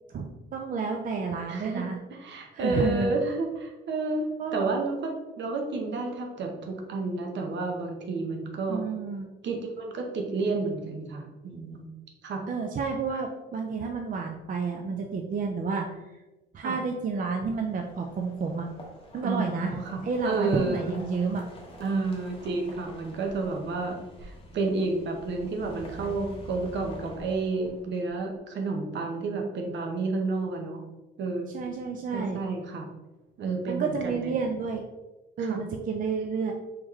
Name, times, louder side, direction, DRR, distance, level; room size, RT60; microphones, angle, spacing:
voice 1, 0.1-2.0 2.5-3.1 4.4-4.7 8.7-9.3 12.5-16.0 16.5-18.7 19.1-21.5 31.5-32.4 33.7-34.8 35.4-36.5, right 5 dB, 45° right, 2 dB, 0.4 m, -30 dB
voice 2, 1.5-4.3 4.5-5.1 5.4-8.8 9.4-11.9 12.2-12.4 16.6-16.8 19.2-20.9 21.8-30.8 31.2-31.6 32.1-32.9 33.4-34.4 35.4-35.6, right 3 dB, 65° right, 2 dB, 0.9 m, -31 dB
sound 1, 17.3-28.1, left 1 dB, 30° left, 1.0 m, -47 dB
3.6 x 3.1 x 3.0 m, 1.1 s
cardioid pair, 90°, 20 cm